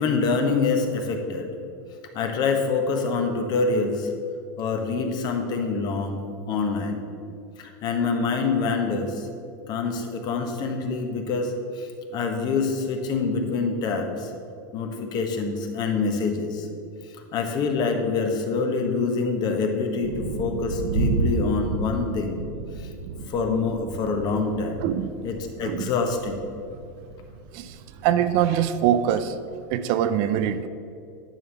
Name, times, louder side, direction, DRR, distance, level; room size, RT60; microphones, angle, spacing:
voice 1, 0.0-1.5 2.1-4.1 4.6-7.1 7.6-9.3 9.7-14.3 14.7-16.7 17.3-22.4 22.8-22.9 23.3-24.8 25.2-26.4, left 4 dB, 40° left, 4 dB, 1.2 m, -26 dB
sound 1, 20.0-29.7, right 3 dB, 90° right, 0.7 m, -32 dB
voice 2, 24.8-25.1 25.6-25.9 27.5-27.8 28.0-29.4 29.7-30.7, right 10 dB, 55° right, 12 dB, 0.5 m, -23 dB
10.0 x 3.6 x 6.9 m, 2.4 s
supercardioid pair, 125°, 11 cm